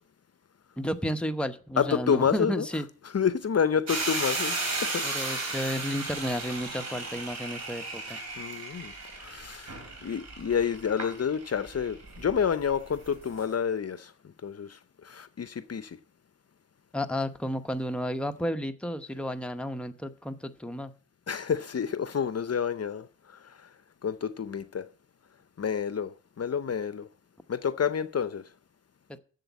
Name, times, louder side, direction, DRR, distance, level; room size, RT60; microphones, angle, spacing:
voice 1, 0.8-2.8 5.0-8.2 16.9-20.9, equal, 5° left, 0.9 m, -32 dB
voice 2, 1.8-2.7 3.1-5.6 8.4-8.9 9.2-14.1 14.4-16.0 21.3-23.1 24.0-24.9 25.6-27.1 27.5-28.4, left 7 dB, 50° left, 0.7 m, -29 dB
sound 1, 3.9-13.5, right 2 dB, 55° right, 3.3 m, -35 dB
7.7 x 7.1 x 8.2 m
cardioid pair, 70°, 32 cm